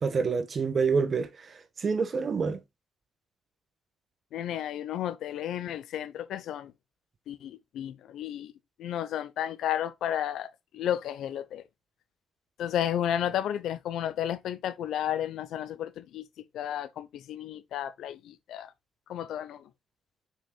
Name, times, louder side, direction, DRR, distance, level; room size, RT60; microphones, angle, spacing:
voice 1, 0.0-2.6, right 5 dB, 45° right, 1.3 m, -27 dB
voice 2, 4.3-6.7 7.3-8.5 8.8-11.6 12.6-16.2 16.5-18.7 19.1-19.7, left 10 dB, 80° left, 0.8 m, -32 dB
6.9 x 6.2 x 2.3 m
cardioid pair, 90°, 0 cm